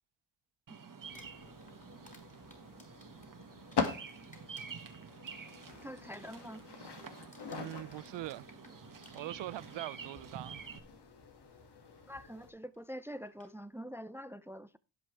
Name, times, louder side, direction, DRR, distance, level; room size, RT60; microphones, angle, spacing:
Bird vocalization bird call bird song, 0.7-10.8, right 6 dB, 50° right, 1.7 m, -50 dB
sound 1, 1.0-12.5, left 5 dB, 70° left, 2.3 m, -44 dB
Crumpling crinkling, 1.0-4.1 4.3-5.7 6.1-6.4 6.7-7.0 7.3-9.7 10.6-10.7 12.7-12.8 13.2-13.5, left 1 dB, 15° left, 4.6 m, -60 dB
voice 1, 5.8-6.6 12.1-14.8, equal, 5° right, 0.5 m, -45 dB
voice 2, 7.5-8.5 9.1-10.6, right 15 dB, 80° right, 0.6 m, -42 dB
16.5 x 6.1 x 3.4 m
cardioid pair, 70°, 43 cm